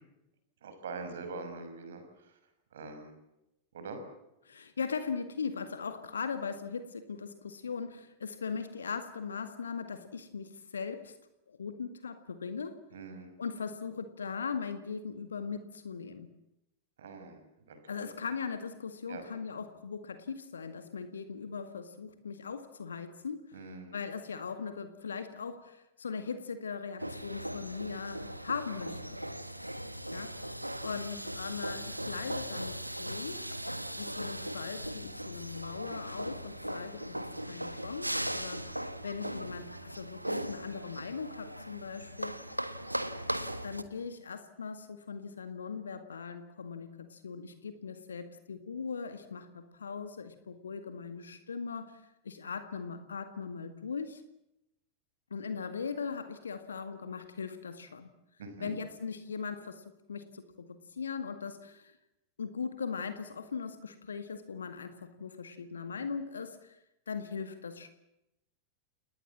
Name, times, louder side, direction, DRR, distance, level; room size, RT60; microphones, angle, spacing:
voice 1, 0.6-2.4 2.7-3.1 3.7-4.0 12.9-13.3 17.0-17.4 17.7-18.1 19.1-19.2 23.5-23.9 58.4-58.7, right 4 dB, 60° right, 7 dB, 6.0 m, -43 dB
voice 2, 4.4-11.1 11.5-12.8 13.4-16.3 17.9-23.6 23.9-29.2 30.1-30.6 30.8-33.4 34.0-42.5 43.6-54.2 55.3-58.1 58.6-62.0 62.4-66.8 67.1-67.9, left 5 dB, 70° left, 9 dB, 1.9 m, -39 dB
sound 1, 27.0-43.8, right 1 dB, 90° right, 1.4 m, -38 dB
29.5 x 19.0 x 7.5 m, 0.88 s
figure-of-eight pair, 90°, 0 cm